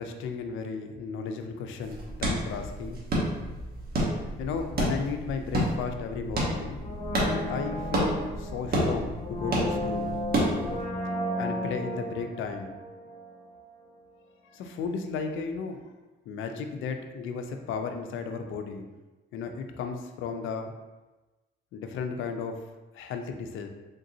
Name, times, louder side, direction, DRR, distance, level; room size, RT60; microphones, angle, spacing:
voice 1, 0.0-3.0 4.4-6.8 7.2-10.1 10.4-10.7 11.4-12.8 14.5-15.8 16.3-18.9 19.3-20.7 21.7-22.6 22.9-23.7, left 5 dB, 85° left, 6 dB, 0.5 m, -34 dB
sound 1, 1.8-10.8, right 1 dB, 50° right, 1.1 m, -30 dB
Brass instrument, 6.8-13.6 13.9-14.0, equal, 35° left, 1.0 m, -34 dB
3.8 x 3.6 x 2.7 m, 1.1 s
cardioid pair, 90°, 20 cm